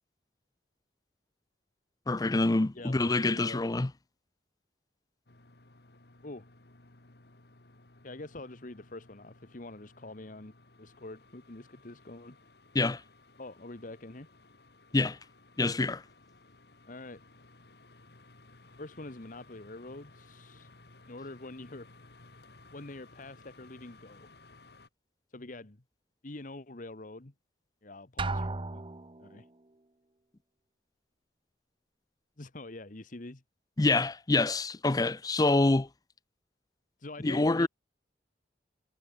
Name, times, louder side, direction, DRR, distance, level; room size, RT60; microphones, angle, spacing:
voice 1, 2.1-3.9 12.7-13.0 14.9-15.2 15.6-16.0 33.8-35.9 37.2-37.7, left 2 dB, 20° left, 0.5 m, -26 dB
voice 2, 2.7-3.7 6.2-6.5 8.0-12.4 13.4-14.3 16.9-17.2 18.8-20.7 21.1-21.9 22.7-24.3 25.3-25.8 26.2-27.3 27.8-28.8 29.2-29.5 32.4-33.4 37.0-37.7, left 2 dB, 50° left, 1.4 m, -45 dB
sound 1, 5.3-24.9, left 2 dB, 65° left, 2.0 m, -58 dB
Drum, 28.2-29.4, right 2 dB, 30° right, 0.9 m, -34 dB
head